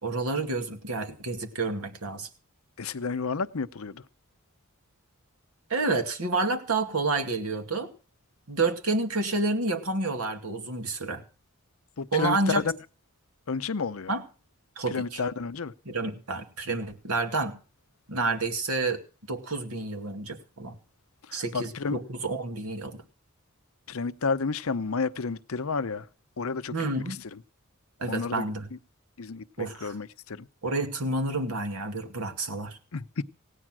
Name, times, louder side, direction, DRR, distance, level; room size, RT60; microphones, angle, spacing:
voice 1, 0.0-2.3 5.7-7.9 8.5-11.2 12.1-12.6 14.1-14.2 14.8-15.2 15.9-17.6 18.1-20.8 21.3-23.0 26.7-27.2 28.0-28.7 29.6-29.9 30.6-32.8, right 3 dB, 90° right, 2.3 m, -29 dB
voice 2, 2.8-4.0 12.0-12.8 13.5-14.1 14.9-15.7 21.2-22.0 23.9-26.1 26.4-27.0 27.3-27.4 28.1-28.8 29.2-30.5 32.9-33.2, left 4 dB, 75° left, 0.7 m, -31 dB
17.0 x 9.9 x 6.1 m
head